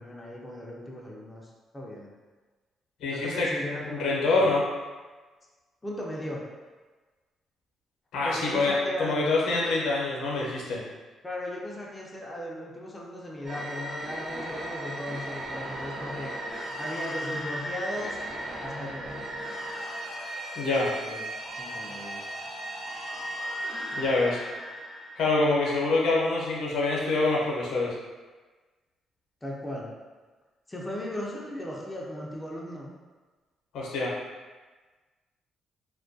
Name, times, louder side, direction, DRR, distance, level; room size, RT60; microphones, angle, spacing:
voice 1, 0.0-2.1 3.1-4.4 5.8-6.4 8.2-9.3 11.2-16.3 16.8-18.2 18.6-19.1 20.9-21.3 21.6-22.2 29.4-29.9 30.7-32.9, left 1 dB, 15° left, -3 dB, 0.4 m, -37 dB
voice 2, 3.0-3.5 3.9-4.6 8.1-10.8 20.5-20.9 24.0-24.4 25.2-27.9 33.7-34.1, left 3 dB, 85° left, -3 dB, 0.6 m, -25 dB
sound 1, 13.4-26.0, right 1 dB, 45° right, 0.8 m, -36 dB
2.2 x 2.2 x 2.5 m, 1.3 s
cardioid pair, 90°, 0 cm